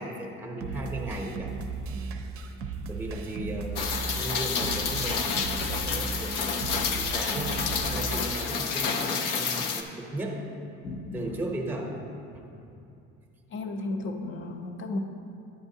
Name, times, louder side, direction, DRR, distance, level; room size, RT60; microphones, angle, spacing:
voice 1, 0.0-1.5 2.9-10.4 11.1-12.0 12.3-12.7, right 1 dB, 5° right, 1 dB, 0.8 m, -36 dB
sound 1, 0.6-8.6, right 4 dB, 45° right, 0.6 m, -36 dB
Rain, 3.8-9.8, left 5 dB, 85° left, 0.7 m, -29 dB
voice 2, 10.8-11.4 13.5-15.0, left 2 dB, 40° left, 5 dB, 0.7 m, -34 dB
10.5 x 8.7 x 2.7 m, 2.6 s
cardioid pair, 150°, 31 cm